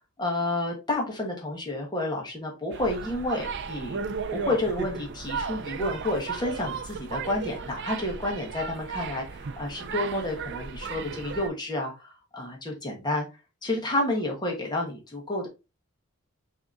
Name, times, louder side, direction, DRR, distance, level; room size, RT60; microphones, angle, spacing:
voice 1, 0.2-4.0 4.4-13.3 13.6-15.5, left 1 dB, 20° left, 0 dB, 1.2 m, -30 dB
sound 1, 2.7-11.5, right 5 dB, 55° right, 0.5 m, -35 dB
5.8 x 2.8 x 2.5 m, 0.28 s
head